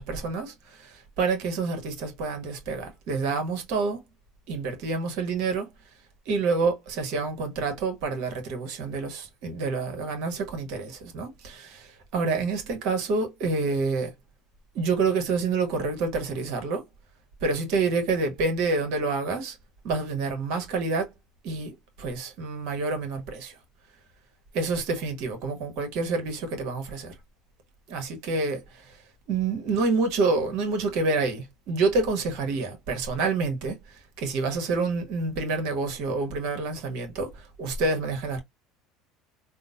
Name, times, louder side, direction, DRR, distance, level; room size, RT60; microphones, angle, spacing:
voice 1, 0.0-4.0 4.5-5.7 6.3-14.1 14.7-16.8 17.4-19.6 19.8-21.1 21.4-23.5 24.5-27.1 27.9-29.0 29.3-38.4, right 4 dB, 65° right, 1.2 m, -28 dB
3.6 x 2.1 x 2.5 m
hypercardioid pair, 75°, 0 cm